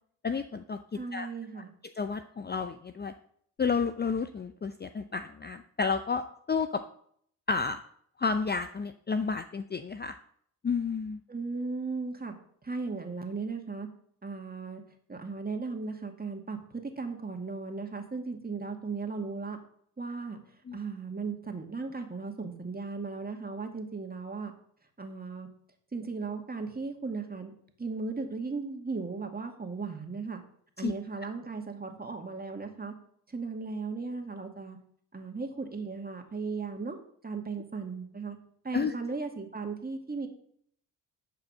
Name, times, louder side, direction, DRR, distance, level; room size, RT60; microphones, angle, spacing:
voice 1, 0.2-0.8 1.1-1.3 2.0-3.1 3.6-6.8 7.5-7.8 8.2-10.2 10.6-11.2 20.7-20.8 30.8-30.9 38.7-38.9, left 5 dB, 25° left, 10 dB, 0.6 m, -31 dB
voice 2, 0.9-1.7 11.3-12.3 12.6-13.9 14.2-14.8 15.1-19.6 20.0-20.4 20.7-24.5 25.0-25.5 25.9-27.5 27.8-30.4 30.8-32.9 33.3-34.8 35.1-37.0 37.2-38.4 38.6-40.3, right 4 dB, 20° right, 4 dB, 2.2 m, -36 dB
11.0 x 4.9 x 6.5 m, 0.65 s
hypercardioid pair, 50°, 44 cm